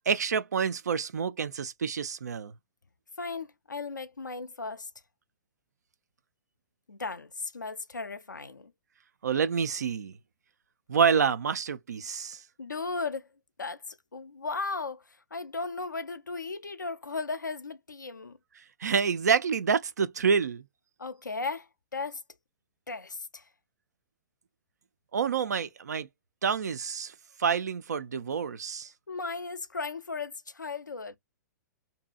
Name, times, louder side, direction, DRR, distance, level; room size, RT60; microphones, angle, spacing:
voice 1, 0.1-2.5 9.2-10.1 10.9-12.4 18.8-20.6 25.1-26.1 26.4-27.1 27.4-28.9, right 6 dB, 65° right, 0.4 m, -27 dB
voice 2, 3.2-4.9 6.9-8.7 12.6-13.3 13.6-13.8 14.1-15.0 15.3-18.4 21.0-21.7 21.9-22.2 22.9-23.4 29.1-31.2, left 4 dB, 80° left, 0.4 m, -36 dB
2.7 x 2.6 x 2.2 m
figure-of-eight pair, 110°, 10 cm